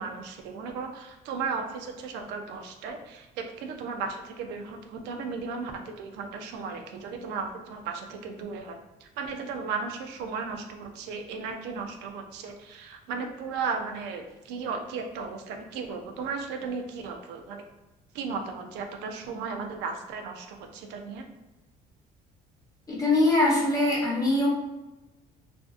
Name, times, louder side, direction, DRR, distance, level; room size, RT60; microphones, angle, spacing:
voice 1, 0.0-17.6 18.1-21.3, right 5 dB, 90° right, 5 dB, 0.4 m, -35 dB
voice 2, 22.9-24.5, left 2 dB, 20° left, -5 dB, 0.9 m, -22 dB
2.5 x 2.3 x 2.4 m, 1.1 s
cardioid pair, 110°, 17 cm